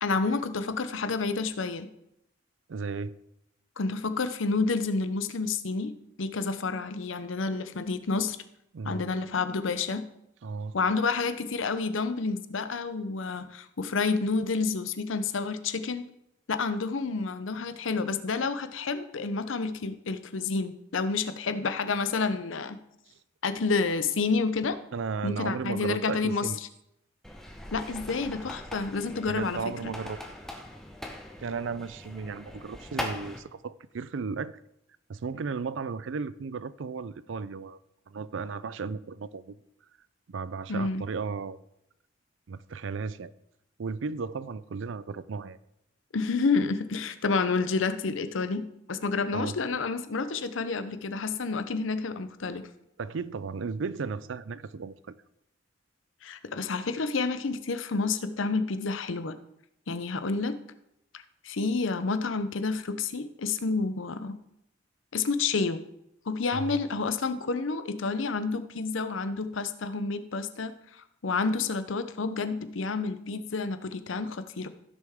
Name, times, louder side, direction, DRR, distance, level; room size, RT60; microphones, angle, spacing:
voice 1, 0.0-1.9 3.8-5.9 6.2-8.4 8.8-10.1 10.7-16.1 16.5-22.8 23.4-24.8 25.2-26.5 27.7-29.6 40.7-41.0 46.1-52.6 56.2-59.3 59.9-60.6 61.4-64.4 65.1-65.8 66.3-70.7 71.2-74.7, left 4 dB, 75° left, 11 dB, 0.7 m, -29 dB
voice 2, 2.7-3.1 8.7-9.0 10.4-10.8 24.9-26.6 29.3-30.2 31.4-34.6 35.1-37.8 38.1-39.6 40.3-41.6 42.5-43.3 43.8-45.6 49.3-49.6 53.0-55.2 66.5-66.8, right 5 dB, 70° right, 17 dB, 0.4 m, -35 dB
sound 1, 27.2-33.4, left 1 dB, ahead, 0.9 m, -41 dB
16.0 x 6.5 x 3.6 m, 0.81 s
head